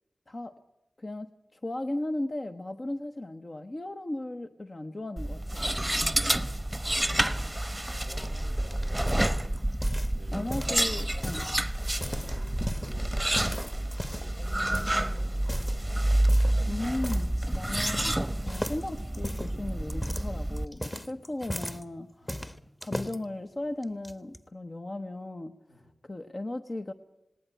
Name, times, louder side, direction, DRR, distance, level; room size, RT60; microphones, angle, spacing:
voice 1, 0.3-0.6 1.0-5.7 10.3-11.5 16.7-22.5 22.8-25.5 26.0-26.9, left 1 dB, 45° left, 7 dB, 0.9 m, -36 dB
sound 1, 5.2-20.6, right 1 dB, 10° right, 0.9 m, -29 dB
voice 2, 5.9-6.5 6.8-7.3 7.7-9.5 10.1-10.6 11.1-11.5 11.9-13.4 14.1-16.1 22.2-22.5 25.7-25.9, left 1 dB, 80° left, 0 dB, 7.1 m, -51 dB
sound 2, 8.3-10.2 10.5-11.5 11.9-12.9 13.4-14.3 14.7-15.0 15.4-15.8 16.3-16.6 17.0-17.3 17.5-18.2 18.5-21.8 22.3-23.2 23.8-24.4, left 1 dB, 15° left, 1.4 m, -37 dB
19.5 x 18.5 x 9.0 m, 0.90 s
cardioid pair, 40°, 0 cm